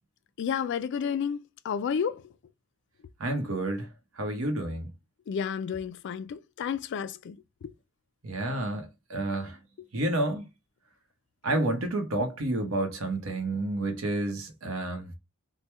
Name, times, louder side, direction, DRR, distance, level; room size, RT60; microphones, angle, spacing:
voice 1, 0.4-2.2 5.3-7.4, left 7 dB, 60° left, 0.3 m, -31 dB
voice 2, 3.2-3.9 4.2-4.9 8.2-9.6 9.9-10.5 11.4-15.1, right 2 dB, 75° right, 0.8 m, -30 dB
3.1 x 2.1 x 3.2 m
head